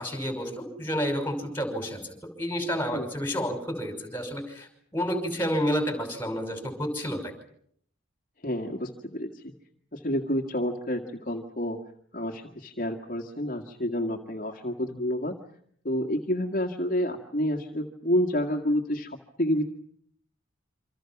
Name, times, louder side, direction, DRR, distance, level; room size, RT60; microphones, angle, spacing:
voice 1, 0.0-2.0 2.4-4.7 4.9-7.2, equal, 10° left, 6 dB, 5.7 m, -30 dB
voice 2, 8.4-9.5 9.9-11.8 12.1-15.4 15.8-19.6, equal, 40° left, 2 dB, 2.0 m, -29 dB
28.0 x 26.0 x 6.1 m, 0.66 s
head